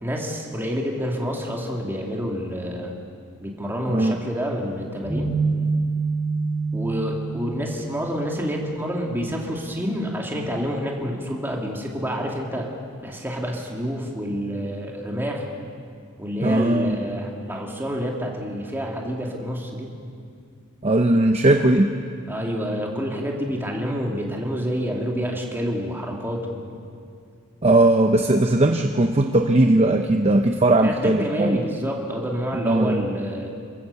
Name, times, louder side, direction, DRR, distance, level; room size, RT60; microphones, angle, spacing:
voice 1, 0.0-2.9 3.4-5.3 6.7-12.7 13.0-15.4 16.2-19.9 22.3-26.7 30.8-33.5, equal, 10° right, -1 dB, 2.6 m, -28 dB
sound 1, 5.0-9.3, right 4 dB, 5° left, 5.8 m, -27 dB
voice 2, 16.4-17.0 20.8-21.9 27.6-31.6 32.6-33.1, right 2 dB, 30° right, 5 dB, 0.7 m, -18 dB
27.5 x 15.5 x 7.0 m, 2.3 s
head